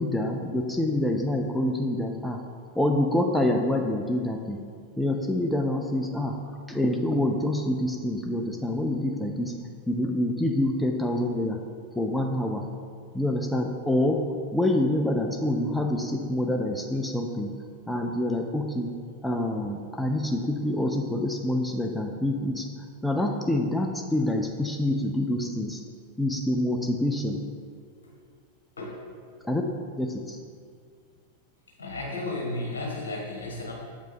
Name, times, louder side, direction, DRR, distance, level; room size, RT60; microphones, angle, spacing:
voice 1, 0.0-2.4 2.8-4.6 5.0-6.4 6.7-9.5 9.9-11.6 12.0-12.7 13.1-14.2 14.5-17.5 17.9-18.9 19.2-22.7 23.0-25.8 26.2-27.4 29.4-29.6 30.0-30.4, left 1 dB, 5° left, 2 dB, 0.4 m, -26 dB
voice 2, 31.8-33.7, left 2 dB, 70° left, -2 dB, 1.4 m, -33 dB
7.3 x 5.1 x 3.3 m, 2.1 s
figure-of-eight pair, 90°, 0 cm